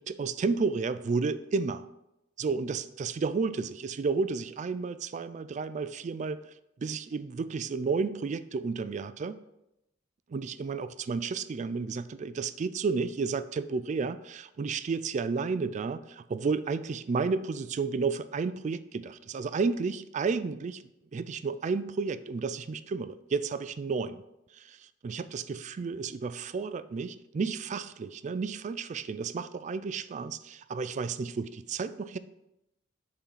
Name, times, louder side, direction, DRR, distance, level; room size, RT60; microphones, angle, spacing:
voice 1, 0.0-1.8 2.4-6.4 6.8-9.4 10.3-20.8 21.1-24.2 24.5-24.8 25.0-32.2, right 4 dB, 40° right, 14 dB, 0.3 m, -32 dB
7.1 x 3.9 x 5.5 m, 0.88 s
head